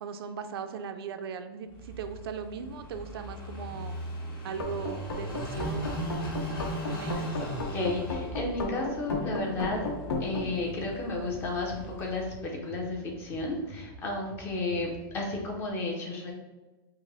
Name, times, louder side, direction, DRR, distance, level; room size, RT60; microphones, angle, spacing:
voice 1, 0.0-4.0 4.4-6.1 6.9-7.3, right 6 dB, 75° right, 8 dB, 0.4 m, -38 dB
Car passing by / Idling, 1.7-12.4, right 1 dB, 65° left, 1.4 m, -38 dB
sound 1, 4.5-10.5, left 2 dB, 85° left, 0.8 m, -34 dB
sound 2, 6.7-15.7, equal, 35° left, 1.0 m, -49 dB
voice 2, 7.7-9.8 10.2-16.3, left 2 dB, 15° left, -1 dB, 0.5 m, -33 dB
5.0 x 2.0 x 3.9 m, 1.2 s
supercardioid pair, 180°, 13 cm